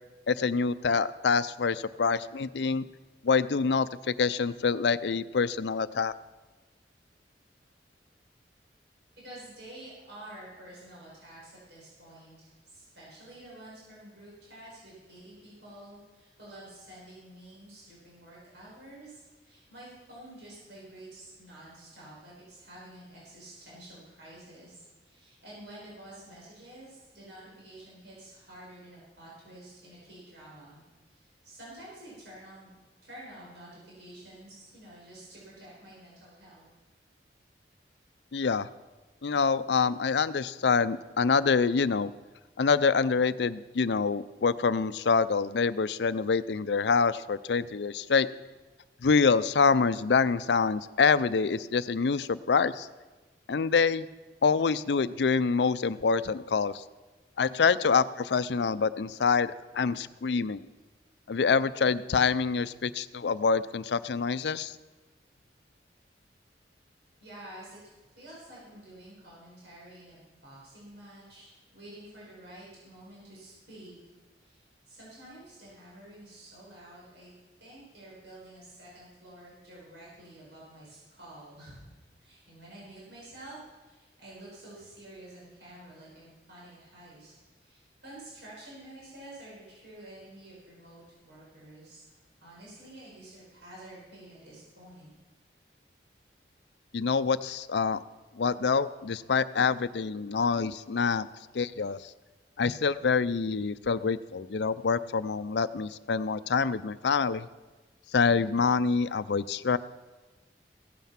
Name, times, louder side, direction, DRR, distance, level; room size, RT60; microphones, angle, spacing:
voice 1, 0.3-2.9 3.2-6.1 38.3-38.7 39.2-42.1 42.6-48.3 49.0-52.9 53.5-54.1 54.4-56.8 57.4-60.6 61.3-64.7 96.9-98.0 98.4-101.3 101.5-102.0 102.6-107.5 108.1-109.8, left 5 dB, 70° left, 16 dB, 0.5 m, -26 dB
voice 2, 9.2-32.7 33.0-36.7 67.2-67.8 68.2-74.1 74.4-77.3 77.6-87.3 87.6-92.1 92.4-95.1, right 1 dB, 80° right, -6 dB, 5.4 m, -49 dB
16.0 x 9.3 x 5.8 m, 1.2 s
head